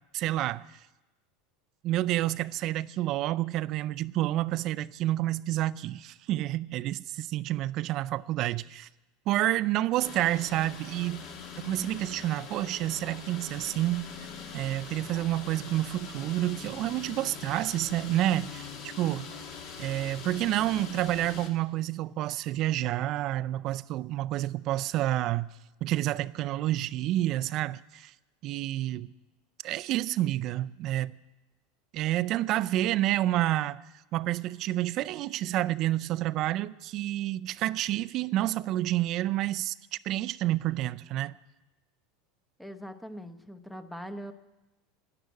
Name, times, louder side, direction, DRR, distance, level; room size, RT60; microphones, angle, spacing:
voice 1, 0.1-0.8 1.8-8.9 9.3-11.2 11.6-14.1 14.5-19.3 19.8-25.5 25.8-28.1 28.4-29.1 29.6-31.2 31.9-33.8 34.1-41.3, right 14 dB, 50° right, 0.4 m, -29 dB
sound 1, 10.0-21.5, left 6 dB, 55° left, 1.8 m, -43 dB
voice 2, 42.6-44.3, equal, 5° left, 0.8 m, -41 dB
11.5 x 11.0 x 8.2 m
supercardioid pair, 120°, 0 cm